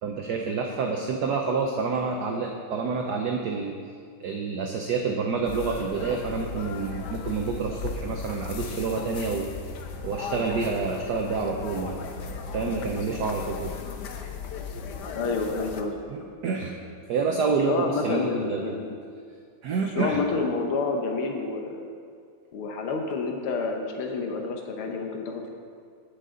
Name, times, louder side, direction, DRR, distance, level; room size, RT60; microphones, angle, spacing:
voice 1, 0.0-3.7 4.2-9.5 10.0-12.0 12.5-13.7 16.1-16.8 17.1-18.8 19.6-20.2, right 4 dB, 65° right, 2 dB, 1.1 m, -28 dB
sound 1, 5.4-15.8, left 5 dB, 65° left, 1.2 m, -36 dB
voice 2, 15.1-16.0 17.7-19.0 20.0-21.8 22.5-25.5, left 4 dB, 85° left, 2 dB, 1.9 m, -29 dB
18.5 x 6.7 x 3.8 m, 2.2 s
omnidirectional pair, 2.3 m